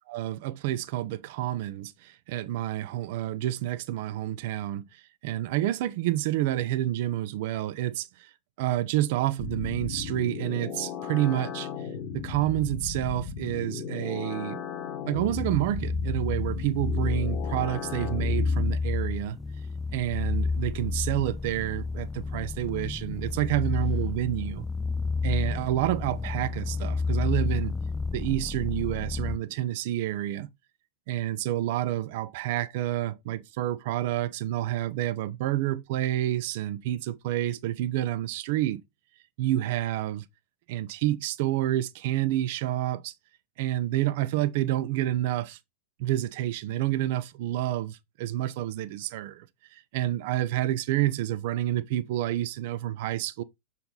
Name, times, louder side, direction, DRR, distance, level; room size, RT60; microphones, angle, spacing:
voice 1, 0.1-4.8 5.2-8.3 8.6-11.7 12.1-14.6 15.1-19.4 19.9-24.6 25.2-27.8 28.1-30.5 31.1-38.8 39.4-40.2 40.7-43.1 43.6-45.6 46.0-49.5 49.7-53.4, right 14 dB, 50° right, 0.5 m, -29 dB
sound 1, 9.4-18.8, left 6 dB, 35° left, 1.3 m, -36 dB
sound 2, 15.1-29.4, left 4 dB, 10° left, 0.4 m, -30 dB
6.6 x 4.1 x 3.8 m
figure-of-eight pair, 90°, 0 cm